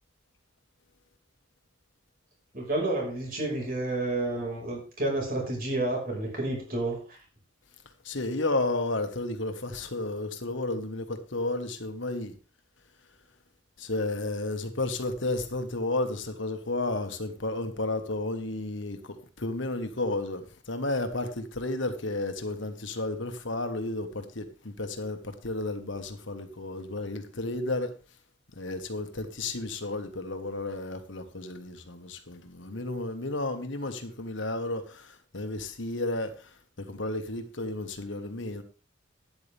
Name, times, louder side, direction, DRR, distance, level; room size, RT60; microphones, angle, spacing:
voice 1, 2.5-7.2, right 2 dB, 45° right, 5.4 m, -30 dB
voice 2, 8.0-12.3 13.8-19.0 19.4-27.9 28.6-35.1 35.3-36.3 36.9-38.6, left 2 dB, 65° left, 1.6 m, -32 dB
12.5 x 9.7 x 3.6 m
head